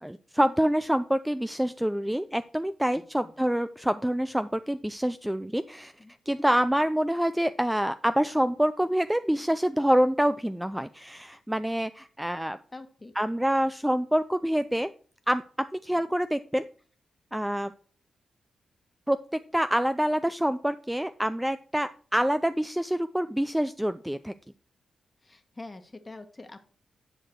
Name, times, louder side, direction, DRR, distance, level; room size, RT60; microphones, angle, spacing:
voice 1, 0.0-5.9 6.3-12.6 13.2-14.9 15.3-15.4 15.8-16.6 17.3-17.7 19.1-24.3, equal, 5° right, 12 dB, 0.4 m, -26 dB
voice 2, 2.9-3.5 6.0-6.1 12.7-13.1 15.9-16.0 25.2-26.6, left 2 dB, 20° left, 7 dB, 1.3 m, -45 dB
9.9 x 4.7 x 4.4 m, 0.42 s
cardioid pair, 85°, 0 cm